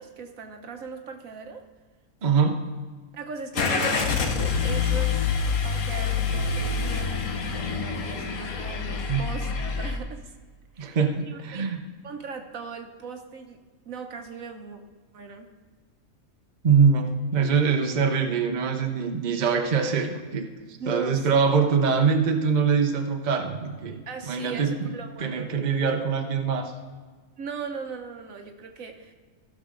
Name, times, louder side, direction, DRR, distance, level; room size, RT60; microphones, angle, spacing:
voice 1, 0.0-1.7 3.1-5.2 5.6-10.3 10.7-11.7 12.0-13.6 13.9-14.8 15.1-15.5 20.8-21.4 24.1-25.5 27.4-29.1, right 5 dB, 70° right, 5 dB, 1.4 m, -38 dB
voice 2, 2.2-2.7 9.1-9.2 10.8-11.8 16.6-20.5 20.9-24.0 24.3-24.9 25.2-26.7, right 5 dB, 40° right, 4 dB, 0.8 m, -23 dB
Car / Engine starting, 3.5-10.0, left 5 dB, 75° left, 1.5 m, -26 dB
15.0 x 6.4 x 3.8 m, 1.4 s
omnidirectional pair, 1.5 m